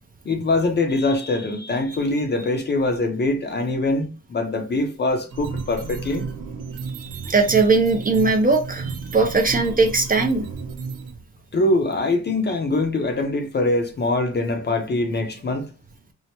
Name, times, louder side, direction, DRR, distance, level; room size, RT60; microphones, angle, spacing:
voice 1, 0.2-6.2 11.5-15.7, left 2 dB, 35° left, 0.6 m, -23 dB
sound 1, 5.3-11.1, right 4 dB, 85° right, 0.8 m, -33 dB
voice 2, 6.9-10.5, right 3 dB, 30° right, 0.5 m, -20 dB
4.5 x 2.0 x 2.7 m
wide cardioid pair, 175°, 31 cm